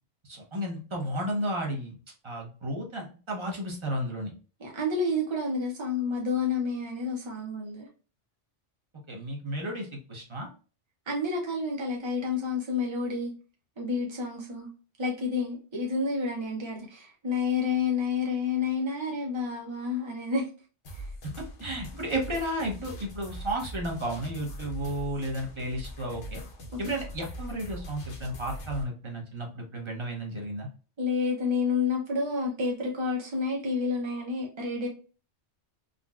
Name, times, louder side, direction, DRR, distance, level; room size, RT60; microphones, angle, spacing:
voice 1, 0.3-2.0 2.2-4.3 9.1-10.5 21.6-26.4 26.8-30.7, right 1 dB, 30° right, 0.7 m, -33 dB
voice 2, 4.6-7.9 11.1-13.3 13.8-14.7 15.0-20.5 20.9-21.0 26.7-26.8 31.0-34.9, left 4 dB, 50° right, 0.3 m, -29 dB
sound 1, 20.8-28.8, equal, 60° left, 0.9 m, -41 dB
3.8 x 2.2 x 2.2 m
omnidirectional pair, 1.2 m